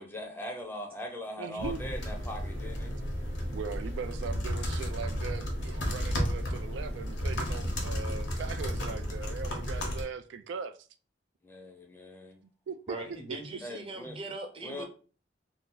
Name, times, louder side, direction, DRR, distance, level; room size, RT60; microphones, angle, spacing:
voice 1, 0.0-3.0 11.4-12.4 13.6-14.2 14.7-14.9, left 1 dB, 10° left, 0.5 m, -40 dB
voice 2, 1.4-1.8 3.5-10.8 12.7-13.0 13.3-13.4, right 5 dB, 80° right, 0.3 m, -39 dB
sound 1, 1.6-10.0, equal, 85° left, 0.9 m, -33 dB
voice 3, 12.9-14.9, right 2 dB, 30° right, 0.7 m, -40 dB
2.7 x 2.3 x 3.7 m
head